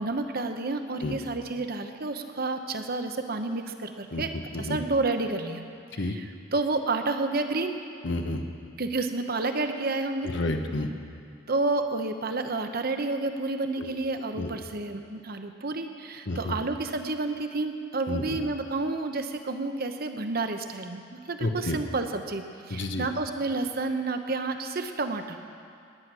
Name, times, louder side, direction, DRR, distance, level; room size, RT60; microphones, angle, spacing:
voice 1, 0.0-4.3 4.6-5.6 5.9-7.7 8.8-10.3 11.5-25.4, right 3 dB, 50° right, 7 dB, 1.0 m, -30 dB
voice 2, 8.0-8.4 10.2-10.9 13.8-13.9 14.4-14.5 16.3-16.6 18.1-18.4 21.4-21.8 22.7-23.1, left 2 dB, 65° left, 5 dB, 1.1 m, -30 dB
19.0 x 10.0 x 6.2 m, 2.4 s
head